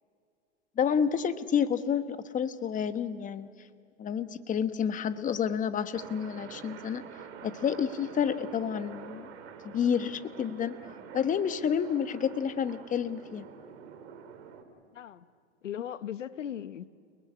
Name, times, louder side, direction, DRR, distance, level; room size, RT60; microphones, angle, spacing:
voice 1, 0.8-3.5 4.0-7.0 7.4-9.3 9.6-10.8 11.1-13.4, left 7 dB, 20° left, 1.2 m, -29 dB
sound 1, 5.9-14.6, right 7 dB, 60° right, 3.9 m, -46 dB
voice 2, 14.9-15.3 15.6-16.8, left 10 dB, 85° left, 1.1 m, -37 dB
29.5 x 20.5 x 9.8 m
hypercardioid pair, 110°, 36 cm